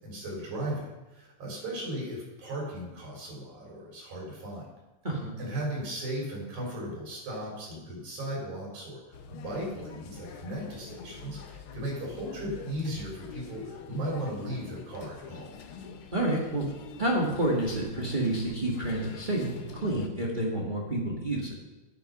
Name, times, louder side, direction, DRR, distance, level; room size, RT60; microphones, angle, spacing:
voice 1, 0.0-4.7 5.4-9.0 9.3-15.6, right 1 dB, 70° right, -3 dB, 5.1 m, -36 dB
sound 1, 9.1-20.1, left 6 dB, 85° left, 1.1 m, -45 dB
voice 2, 16.1-16.6 17.0-21.6, right 1 dB, 25° right, -2 dB, 1.0 m, -29 dB
9.5 x 9.1 x 5.4 m, 1.1 s
omnidirectional pair, 3.5 m